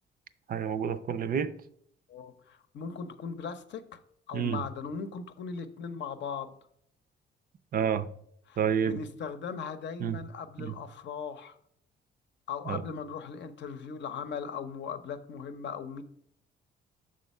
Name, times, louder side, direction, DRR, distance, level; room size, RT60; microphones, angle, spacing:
voice 1, 0.5-1.5 4.3-4.6 7.7-8.1 8.6-9.0 10.0-10.2 10.6-10.7 12.7-12.8, right 7 dB, 45° right, 0.5 m, -29 dB
voice 2, 2.1-4.0 4.3-6.5 8.5-11.6 12.5-16.0, left 6 dB, 65° left, 0.7 m, -38 dB
6.3 x 3.7 x 5.3 m
cardioid pair, 90°, 20 cm